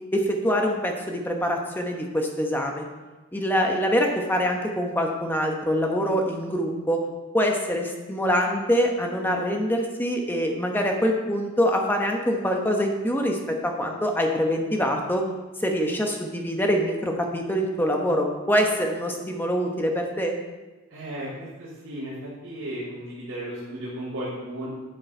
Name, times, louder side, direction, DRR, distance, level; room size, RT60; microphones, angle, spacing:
voice 1, 0.1-2.8 3.3-7.0 7.3-15.3 15.6-20.3, equal, 10° left, 2 dB, 1.0 m, -24 dB
voice 2, 20.9-24.7, right 1 dB, 80° right, -10 dB, 3.2 m, -35 dB
11.5 x 6.4 x 4.4 m, 1.2 s
head